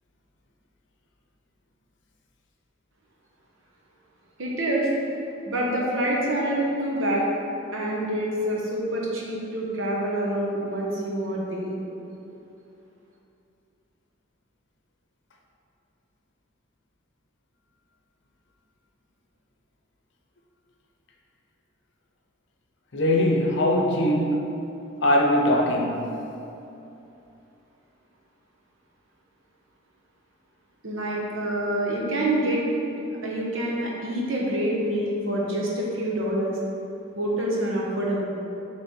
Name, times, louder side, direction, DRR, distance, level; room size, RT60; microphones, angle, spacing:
voice 1, 4.4-4.9 5.4-7.2 7.7-11.8 30.8-32.6 33.2-36.6 37.2-38.2, right 1 dB, 75° right, -3 dB, 1.1 m, -26 dB
voice 2, 22.9-24.5 25.0-26.2, left 1 dB, 60° left, 1 dB, 0.7 m, -21 dB
6.7 x 3.3 x 4.3 m, 2.8 s
head